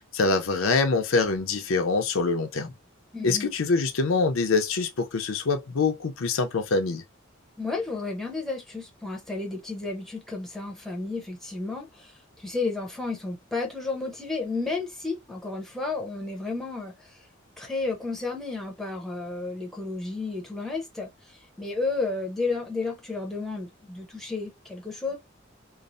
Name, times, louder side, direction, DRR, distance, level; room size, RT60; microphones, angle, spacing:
voice 1, 0.1-2.7 3.2-7.0, left 4 dB, 75° left, 0.5 m, -24 dB
voice 2, 3.1-3.5 7.6-17.2 17.6-25.2, left 3 dB, ahead, 0.7 m, -32 dB
3.1 x 2.0 x 2.5 m
head